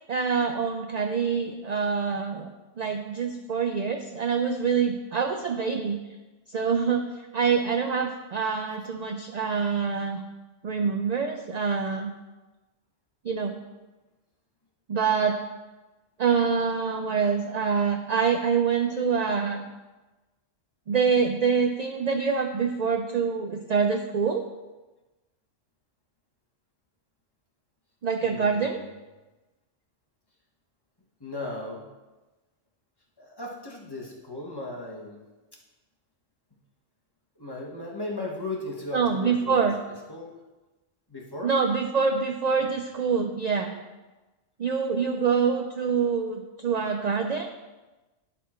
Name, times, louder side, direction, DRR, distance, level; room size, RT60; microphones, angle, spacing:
voice 1, 0.1-2.5 2.8-6.0 6.5-10.2 10.6-12.1 13.2-13.6 14.9-15.3 16.2-19.6 20.9-24.4 28.0-28.8 38.9-39.7 41.4-43.7 44.6-47.5, right 6 dB, 55° right, 5 dB, 0.5 m, -25 dB
voice 2, 28.2-29.0 31.2-31.9 33.2-35.2 37.4-40.3 41.1-41.6 42.5-42.7, left 2 dB, 20° left, -2 dB, 1.3 m, -37 dB
11.0 x 4.3 x 4.3 m, 1.1 s
omnidirectional pair, 1.2 m